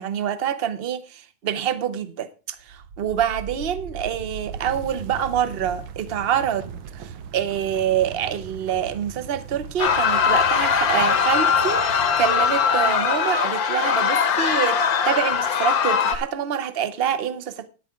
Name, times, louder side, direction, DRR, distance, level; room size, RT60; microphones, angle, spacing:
voice 1, 0.0-17.7, right 9 dB, 45° right, 0.7 m, -26 dB
sound 1, 2.6-13.4, right 7 dB, 90° right, 1.7 m, -39 dB
sound 2, 9.8-16.2, left 7 dB, 55° left, 1.3 m, -21 dB
10.5 x 9.5 x 5.0 m
omnidirectional pair, 2.1 m